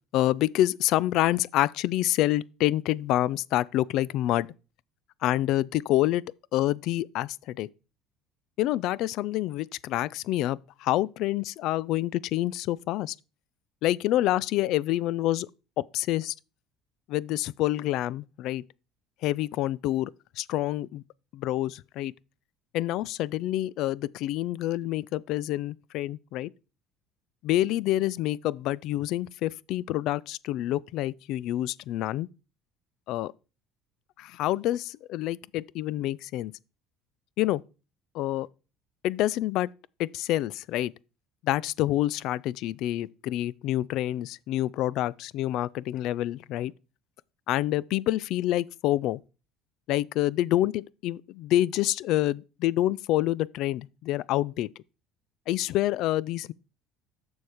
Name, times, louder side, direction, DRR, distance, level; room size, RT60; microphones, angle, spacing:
voice 1, 0.1-4.5 5.2-6.2 6.5-7.7 8.6-13.1 13.8-15.5 15.9-16.3 17.1-18.6 19.2-20.1 20.4-21.0 21.3-22.1 22.7-26.5 27.4-32.3 33.1-33.3 34.2-36.5 37.4-37.6 38.1-38.5 39.0-39.7 40.0-40.9 41.4-46.7 47.5-49.2 49.9-54.7 55.5-56.5, left 14 dB, 65° left, 0.3 m, -27 dB
7.0 x 6.3 x 4.9 m
cardioid pair, 115°, 0 cm